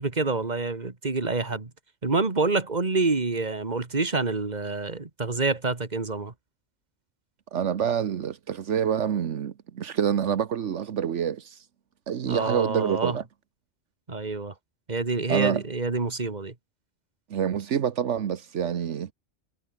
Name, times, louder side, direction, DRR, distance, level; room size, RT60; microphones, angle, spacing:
voice 1, 0.0-1.7 2.0-6.3 12.3-13.2 14.1-14.5 14.9-16.5, right 3 dB, 35° right, 2.2 m, -27 dB
voice 2, 7.5-11.6 12.1-13.2 15.3-15.6 17.3-19.1, right 8 dB, 80° right, 1.3 m, -27 dB
omnidirectional pair, 1.2 m